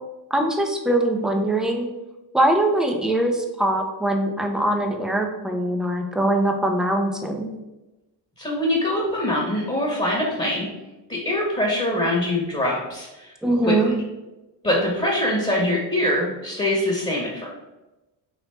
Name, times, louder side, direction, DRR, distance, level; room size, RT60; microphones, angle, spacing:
voice 1, 0.3-1.9 2.3-7.5 13.4-13.9, right 1 dB, ahead, 4 dB, 0.3 m, -22 dB
voice 2, 8.4-10.7 11.1-13.9 14.6-17.5, left 1 dB, 15° left, -3 dB, 0.9 m, -23 dB
3.3 x 2.8 x 4.2 m, 1.0 s
cardioid pair, 100°, 45 cm